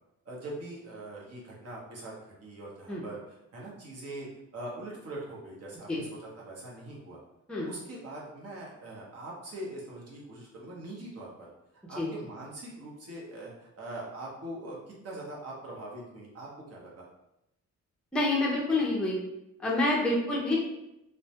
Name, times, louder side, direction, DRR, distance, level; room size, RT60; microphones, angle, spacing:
voice 1, 0.3-7.2 7.7-11.5 11.9-17.1, right 1 dB, 50° right, -4 dB, 0.8 m, -42 dB
voice 2, 18.1-19.2 19.6-20.6, left 2 dB, 5° left, -4 dB, 0.5 m, -27 dB
2.2 x 2.1 x 2.8 m, 0.86 s
cardioid pair, 110°, 31 cm